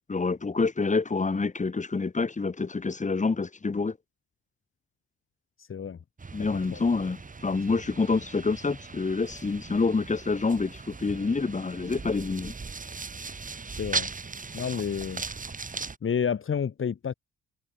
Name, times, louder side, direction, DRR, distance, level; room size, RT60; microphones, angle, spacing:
voice 1, 0.1-4.0 6.3-12.5, left 4 dB, 25° left, 2.8 m, -27 dB
sound 1, 6.2-16.0, right 4 dB, 25° right, 2.8 m, -38 dB
voice 2, 13.8-14.1 14.5-15.2 16.0-17.1, left 7 dB, 45° left, 2.3 m, -29 dB
cardioid pair, 90°, 30 cm